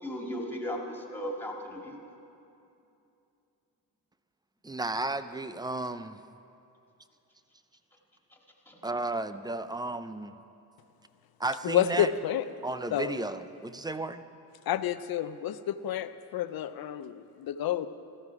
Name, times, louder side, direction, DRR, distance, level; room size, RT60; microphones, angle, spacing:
voice 1, 0.0-2.0 8.7-8.8, equal, 5° left, 0 dB, 2.2 m, -36 dB
voice 2, 4.6-6.2 8.8-10.3 11.4-12.1 12.6-14.2, right 2 dB, 10° right, 12 dB, 0.4 m, -33 dB
voice 3, 11.6-12.4 12.9-13.2 14.7-17.9, left 11 dB, 60° left, 12 dB, 0.7 m, -29 dB
14.5 x 14.0 x 4.8 m, 2.7 s
cardioid pair, 100°, 40 cm